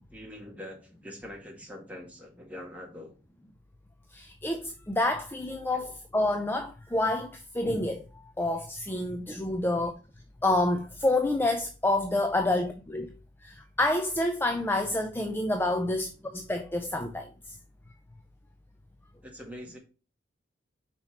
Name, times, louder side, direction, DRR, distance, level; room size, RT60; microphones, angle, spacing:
voice 1, 0.1-3.1 5.7-6.0 19.2-19.8, left 1 dB, 10° right, 1.7 m, -44 dB
voice 2, 4.1-8.0 8.4-9.9 10.4-13.1 13.4-17.3, left 2 dB, 10° left, 0.4 m, -28 dB
5.7 x 4.4 x 4.3 m
head